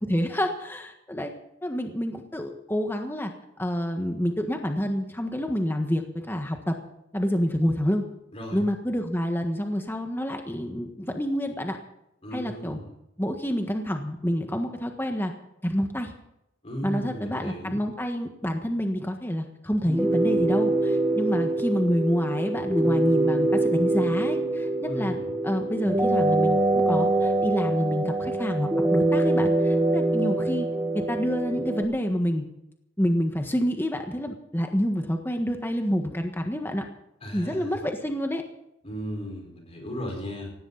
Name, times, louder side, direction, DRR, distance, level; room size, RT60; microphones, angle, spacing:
voice 1, 0.0-1.3 1.6-3.3 3.6-6.7 7.1-8.0 8.5-11.8 12.3-12.8 13.2-15.3 15.6-16.1 16.8-25.1 25.4-30.7 30.9-32.4 33.0-36.8 37.3-38.4, equal, 10° left, 4 dB, 1.5 m, -28 dB
voice 2, 12.2-12.9 16.6-17.8 24.9-25.3 37.2-37.7 38.8-40.5, equal, 35° left, 1 dB, 4.7 m, -35 dB
sound 1, 19.8-31.8, right 2 dB, 10° right, 1.9 m, -24 dB
18.5 x 16.5 x 4.1 m, 0.83 s
head